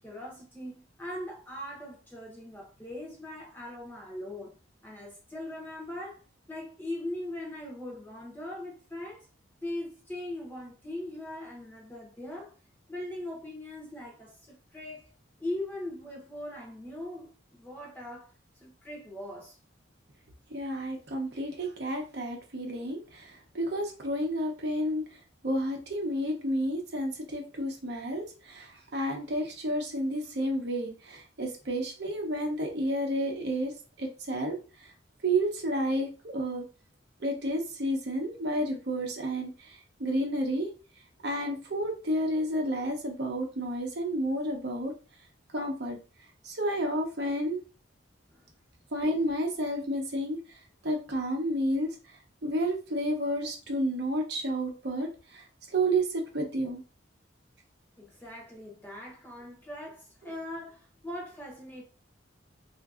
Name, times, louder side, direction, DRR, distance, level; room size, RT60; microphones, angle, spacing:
voice 1, 0.0-4.5 4.8-6.2 6.5-9.3 9.6-12.5 12.9-15.1 15.4-18.3 18.6-19.6 48.3-48.4 58.0-61.8, left 1 dB, 10° left, 0.8 m, -40 dB
voice 2, 20.5-23.0 23.5-25.0 25.4-28.2 28.5-28.7 28.9-33.7 34.0-34.6 35.2-36.6 37.2-39.5 40.0-40.7 41.2-44.9 45.5-46.0 46.5-47.6 48.9-50.4 50.8-51.9 52.4-55.1 55.7-56.8, right 1 dB, 55° right, 0.7 m, -30 dB
3.6 x 2.5 x 2.4 m
head